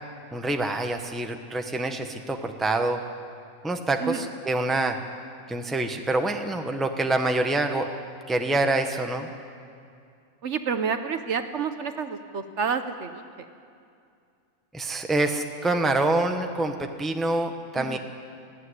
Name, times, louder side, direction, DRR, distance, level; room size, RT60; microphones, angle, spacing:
voice 1, 0.3-3.0 3.6-5.0 5.5-7.9 8.3-9.3 14.7-18.0, right 2 dB, ahead, 5 dB, 0.9 m, -26 dB
voice 2, 10.4-13.2 17.8-18.0, right 6 dB, 60° right, 8 dB, 1.1 m, -29 dB
18.0 x 15.0 x 9.7 m, 2.4 s
omnidirectional pair, 1.5 m